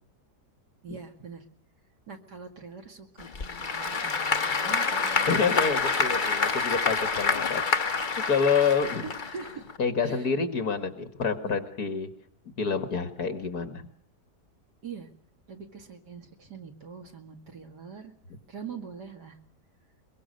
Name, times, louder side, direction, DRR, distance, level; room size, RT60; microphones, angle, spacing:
voice 1, 0.8-1.4 2.1-5.5 8.6-8.7 9.2-9.6 10.0-10.3 11.4-11.6 14.8-15.1 15.5-18.1 18.5-19.4, right 6 dB, 75° right, 4 dB, 2.7 m, -43 dB
Applause / Crowd, 3.2-9.8, left 4 dB, 30° left, 1.2 m, -27 dB
voice 2, 5.3-7.6 8.3-9.0 9.8-12.1 12.6-13.9, left 5 dB, 65° left, 9 dB, 2.4 m, -27 dB
22.5 x 22.5 x 6.6 m, 0.64 s
omnidirectional pair, 1.8 m